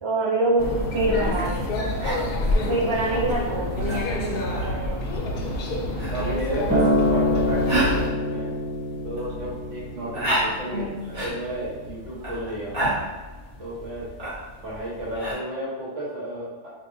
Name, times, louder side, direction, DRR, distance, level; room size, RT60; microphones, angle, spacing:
voice 1, 0.0-1.9 2.2-5.0 10.7-11.0, right 2 dB, 30° right, -5 dB, 0.6 m, -26 dB
sound 1, 0.6-8.1, left 1 dB, 60° left, 0.6 m, -27 dB
sound 2, 1.6-15.3, right 1 dB, 50° right, 1.3 m, -33 dB
voice 2, 6.1-8.5 9.0-13.1 13.6-14.1 14.6-16.7, right 1 dB, 80° right, -6 dB, 1.4 m, -32 dB
Acoustic guitar, 6.7-11.0 11.8-11.9, left 1 dB, 10° left, 0.7 m, -25 dB
4.6 x 2.1 x 2.5 m, 1.3 s
omnidirectional pair, 1.3 m